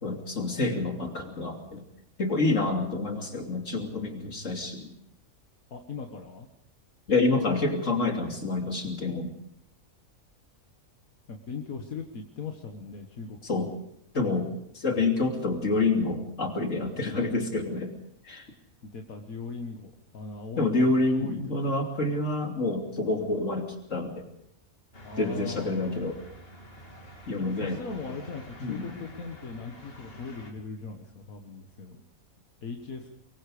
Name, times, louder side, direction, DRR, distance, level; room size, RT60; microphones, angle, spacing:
voice 1, 0.0-1.8 2.2-4.9 7.1-9.3 13.4-13.7 14.1-17.9 18.2-18.5 20.6-24.3 25.2-26.2 27.3-27.8 28.6-28.9, left 2 dB, 60° left, 3 dB, 3.4 m, -28 dB
voice 2, 5.7-6.5 9.1-9.2 11.3-13.8 18.8-20.9 21.2-21.4 25.0-26.0 27.4-32.0 32.6-33.1, left 4 dB, 85° left, 3 dB, 1.9 m, -39 dB
sound 1, 24.9-30.5, equal, 45° left, 3.3 m, -48 dB
23.5 x 23.0 x 5.0 m, 0.75 s
omnidirectional pair, 1.4 m